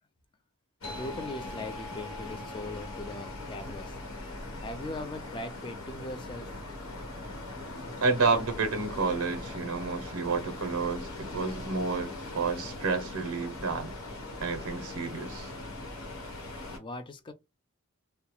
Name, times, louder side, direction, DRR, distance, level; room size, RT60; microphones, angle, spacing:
sound 1, 0.8-16.8, left 2 dB, 80° left, 1.0 m, -40 dB
sound 2, 0.8-5.8, left 1 dB, 55° left, 0.9 m, -48 dB
voice 1, 1.0-6.5 16.8-17.3, left 2 dB, 20° left, 0.3 m, -40 dB
voice 2, 8.0-13.9 14.4-15.5, right 4 dB, 85° right, 0.6 m, -30 dB
2.2 x 2.0 x 2.9 m
head